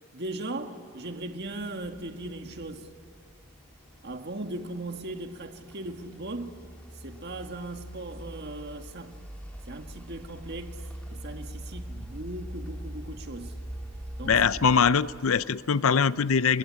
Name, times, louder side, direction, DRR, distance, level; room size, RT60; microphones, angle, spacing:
voice 1, 0.1-2.9 4.0-6.6 7.0-9.2 9.7-10.8 11.1-13.5 14.2-14.4, right 2 dB, 50° right, 1.8 m, -38 dB
sound 1, 1.2-15.7, equal, 5° left, 3.0 m, -43 dB
voice 2, 14.2-16.6, left 6 dB, 70° left, 0.6 m, -22 dB
29.5 x 22.0 x 8.8 m
head